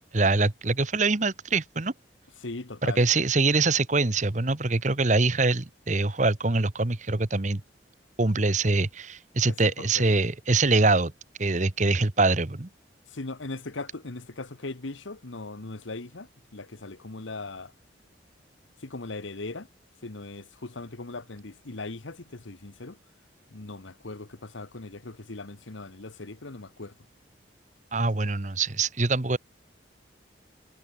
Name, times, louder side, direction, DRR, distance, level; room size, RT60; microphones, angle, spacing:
voice 1, 0.1-1.9 2.8-7.6 8.2-11.1 11.4-12.7 27.9-29.4, right 3 dB, 40° right, 1.1 m, -24 dB
voice 2, 2.4-3.0 9.5-10.1 13.1-17.7 18.8-19.7 20.0-23.0 23.5-26.9, left 2 dB, 85° left, 1.4 m, -39 dB
head